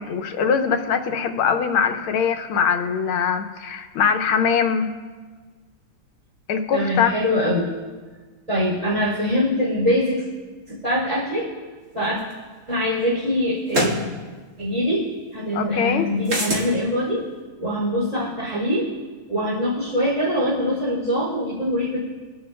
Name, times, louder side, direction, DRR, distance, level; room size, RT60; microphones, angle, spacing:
voice 1, 0.0-4.9 6.5-7.2 15.5-16.1, left 6 dB, 80° left, 6 dB, 1.7 m, -22 dB
voice 2, 6.7-7.7 8.5-10.2 10.7-11.5 11.9-12.2 12.7-13.9 14.6-17.2 17.6-18.9 19.3-22.0, equal, 15° right, -10 dB, 3.1 m, -23 dB
sound 1, 12.3-12.4 13.7-14.0 16.3-16.7, right 1 dB, 50° right, 2.5 m, -22 dB
24.5 x 11.0 x 2.3 m, 1.4 s
omnidirectional pair, 2.3 m